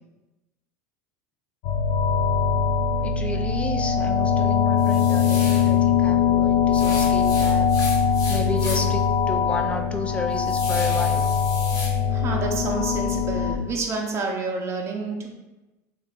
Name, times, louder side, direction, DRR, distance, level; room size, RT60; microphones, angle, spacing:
sound 1, 1.6-13.5, left 7 dB, 70° left, 0.5 m, -22 dB
voice 1, 3.0-7.7 8.3-11.3, left 3 dB, 15° left, 4 dB, 0.4 m, -32 dB
sound 2, 4.8-5.7 6.7-9.0 9.4-9.5 10.0-11.9, left 3 dB, 40° left, 1.0 m, -35 dB
voice 2, 12.1-15.3, right 3 dB, 30° right, 1 dB, 0.7 m, -29 dB
3.1 x 2.4 x 3.5 m, 1.0 s
supercardioid pair, 120°, 9 cm